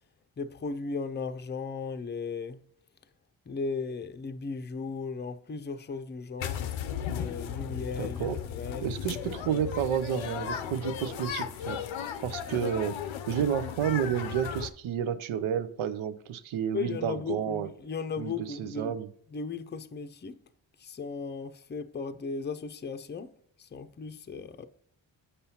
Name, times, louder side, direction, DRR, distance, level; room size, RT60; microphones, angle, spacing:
voice 1, 0.4-2.6 3.5-6.7 7.0-8.9 16.7-19.0 19.3-20.4 20.8-24.7, left 4 dB, 25° left, 0.5 m, -36 dB
sound 1, 6.4-14.7, left 9 dB, 80° left, 0.6 m, -36 dB
voice 2, 8.0-8.4 8.8-11.8 12.2-13.0 13.3-17.7 18.2-18.3 18.6-19.1, right 9 dB, 85° right, 0.6 m, -30 dB
6.7 x 5.5 x 2.8 m
cardioid pair, 50°, 47 cm